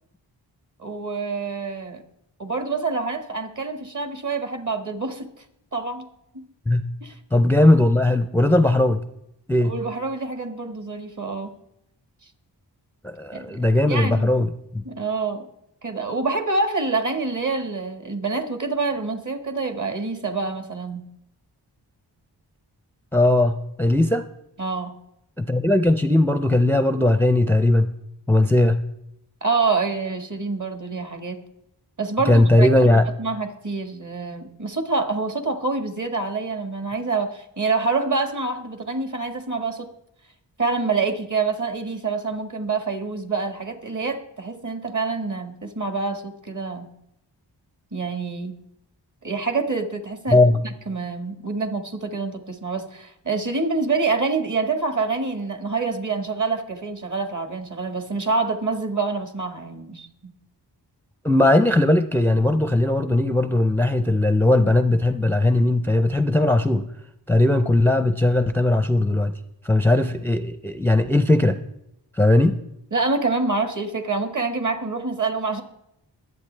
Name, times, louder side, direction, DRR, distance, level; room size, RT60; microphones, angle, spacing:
voice 1, 0.8-2.0 2.4-5.3 5.7-6.0 6.3-6.4 7.0-7.1 9.6-11.5 13.3-13.6 13.8-14.3 14.8-15.5 15.8-21.0 24.6-24.9 29.4-31.4 32.0-39.9 40.6-46.9 47.9-48.5 49.2-50.5 50.9-60.1 72.9-75.6, right 4 dB, 45° right, 6 dB, 1.6 m, -26 dB
voice 2, 7.3-9.0 9.5-9.7 13.0-14.8 23.1-24.2 25.4-27.9 28.3-28.8 32.3-33.0 50.3-50.6 61.2-66.8 67.3-69.3 69.6-71.6 72.2-72.6, left 1 dB, 5° left, 9 dB, 0.5 m, -18 dB
22.0 x 8.1 x 3.3 m, 0.81 s
wide cardioid pair, 70°, 43 cm